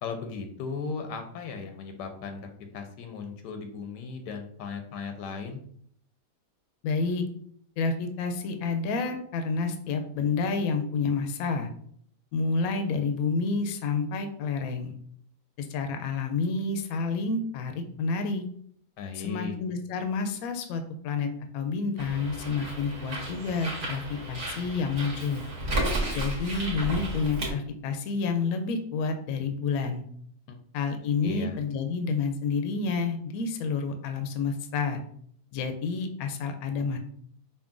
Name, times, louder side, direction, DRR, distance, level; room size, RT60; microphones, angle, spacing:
voice 1, 0.0-5.6 19.0-19.5 30.5-30.6 31.2-31.6, left 5 dB, 90° left, 5 dB, 1.2 m, -37 dB
voice 2, 6.8-7.2 7.8-11.7 12.3-14.9 15.6-18.4 19.2-21.3 21.5-25.4 26.1-30.0 30.7-35.0 35.5-37.0, left 4 dB, 70° left, 6 dB, 0.9 m, -29 dB
Bird, 22.0-27.5, right 1 dB, 65° right, 1.4 m, -33 dB
5.2 x 2.6 x 2.5 m, 0.63 s
omnidirectional pair, 1.8 m